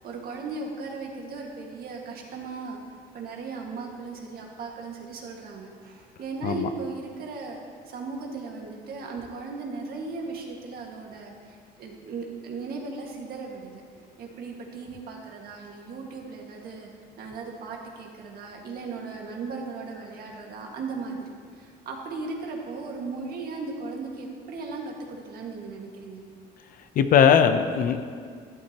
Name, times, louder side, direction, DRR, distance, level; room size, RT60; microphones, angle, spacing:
voice 1, 0.0-2.8 3.1-7.6 7.9-13.8 14.2-16.9 17.2-26.2, right 4 dB, 60° right, 0 dB, 1.8 m, -37 dB
voice 2, 27.0-28.0, left 8 dB, 55° left, 9 dB, 0.7 m, -19 dB
12.0 x 11.5 x 2.9 m, 2.1 s
cardioid pair, 110°, 17 cm